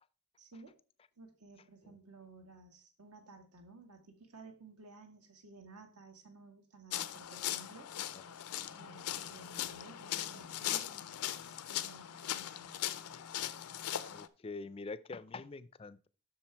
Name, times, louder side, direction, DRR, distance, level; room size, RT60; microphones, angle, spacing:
voice 1, 0.4-0.7 1.2-7.9 8.8-11.1 11.4-12.8, right 3 dB, 90° right, 5 dB, 1.7 m, -55 dB
sound 1, 6.9-14.3, left 12 dB, 90° left, 0.5 m, -39 dB
voice 2, 14.1-16.1, left 3 dB, 25° left, 16 dB, 0.3 m, -45 dB
7.4 x 6.4 x 4.5 m, 0.39 s
head